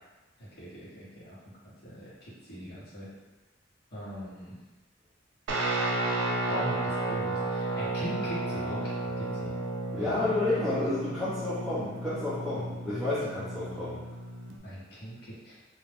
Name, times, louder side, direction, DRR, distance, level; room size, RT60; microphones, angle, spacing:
voice 1, 0.4-1.4 1.8-3.1 3.9-4.5 6.4-8.9 9.2-9.5 10.0-10.3 14.6-15.6, equal, 55° left, -9 dB, 1.1 m, -40 dB
Guitar, 5.5-14.6, right 2 dB, 80° right, 0.5 m, -33 dB
voice 2, 9.9-14.0, left 2 dB, ahead, -14 dB, 0.5 m, -30 dB
2.5 x 2.1 x 3.3 m, 1.2 s
head